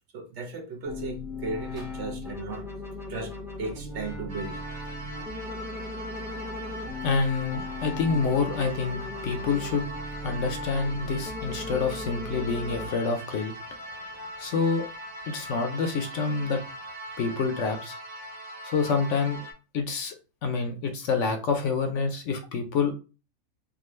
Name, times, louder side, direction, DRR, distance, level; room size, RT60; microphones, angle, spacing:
voice 1, 0.1-2.6 3.1-4.6, right 3 dB, 65° right, 0.8 m, -36 dB
sound 1, 0.9-12.9, left 2 dB, 5° right, 0.4 m, -38 dB
sound 2, 4.3-19.5, equal, 85° right, 1.5 m, -40 dB
voice 2, 7.0-9.9 10.2-13.5 14.4-14.8 15.3-16.6 17.2-18.0 18.6-19.4 19.7-20.1 20.4-22.9, left 4 dB, 65° left, 0.9 m, -27 dB
3.7 x 2.3 x 3.0 m
omnidirectional pair, 1.5 m